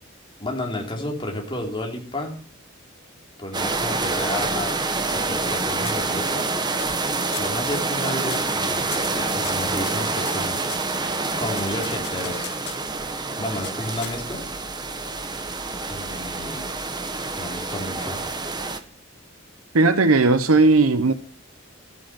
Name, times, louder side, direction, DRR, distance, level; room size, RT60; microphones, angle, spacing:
voice 1, 0.4-2.4 3.4-4.8 5.1-6.5 7.4-10.7 11.4-12.5 13.4-14.4 15.9-16.6 17.4-18.3, left 1 dB, 25° left, 3.5 m, -31 dB
sound 1, 3.5-18.8, right 3 dB, 20° right, 1.2 m, -27 dB
sound 2, 4.9-5.5 5.8-6.4 6.8-7.1 7.3-7.6 8.2-8.6 8.9-10.9 11.5-12.9 13.6-14.5, left 9 dB, 50° left, 1.9 m, -39 dB
voice 2, 19.7-21.1, right 3 dB, 90° right, 0.9 m, -16 dB
13.5 x 9.5 x 6.0 m
head